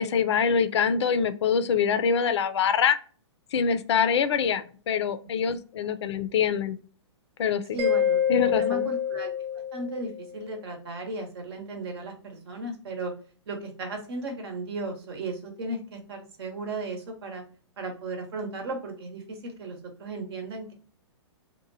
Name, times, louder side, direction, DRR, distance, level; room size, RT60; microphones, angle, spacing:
voice 1, 0.0-3.0 3.5-6.8 7.4-7.8 8.3-8.9, left 6 dB, 65° left, 11 dB, 0.4 m, -24 dB
voice 2, 7.7-9.3 9.7-13.1 13.5-17.4 17.8-20.7, right 2 dB, 55° right, 4 dB, 0.9 m, -35 dB
Mallet percussion, 7.8-10.3, left 8 dB, 10° right, 0.4 m, -26 dB
2.8 x 2.1 x 2.6 m, 0.42 s
hypercardioid pair, 130°, 15 cm